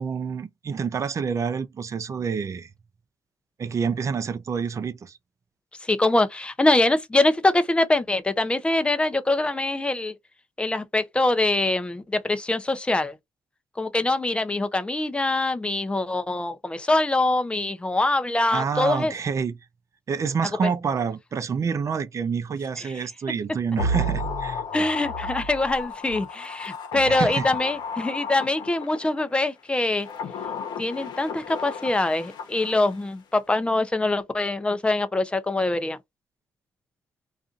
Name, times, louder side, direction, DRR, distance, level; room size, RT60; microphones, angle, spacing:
voice 1, 0.0-2.7 3.6-5.2 18.5-19.5 20.1-24.6 27.1-27.5, right 6 dB, 40° right, 0.5 m, -27 dB
voice 2, 5.8-10.1 10.6-13.2 13.8-19.1 20.6-20.7 24.7-30.1 30.8-36.0, left 2 dB, 15° left, 0.6 m, -24 dB
sound 1, 23.8-29.2 29.9-33.1 33.4-33.5, left 1 dB, 65° left, 0.9 m, -32 dB
2.5 x 2.4 x 2.4 m
supercardioid pair, 75°, 8 cm